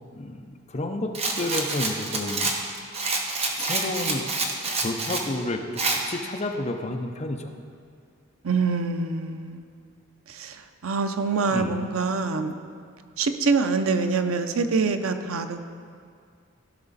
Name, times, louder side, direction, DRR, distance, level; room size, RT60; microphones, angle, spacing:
voice 1, 0.1-2.5 3.6-4.2 4.8-7.5 11.5-11.7, left 2 dB, 30° left, 4 dB, 0.7 m, -30 dB
Rattle, 1.1-5.3 5.8-6.0, right 3 dB, 30° right, 1.0 m, -27 dB
voice 2, 8.4-9.7 10.3-12.5 13.2-15.6, right 4 dB, 85° right, 8 dB, 0.6 m, -25 dB
15.5 x 5.7 x 4.1 m, 2.1 s
head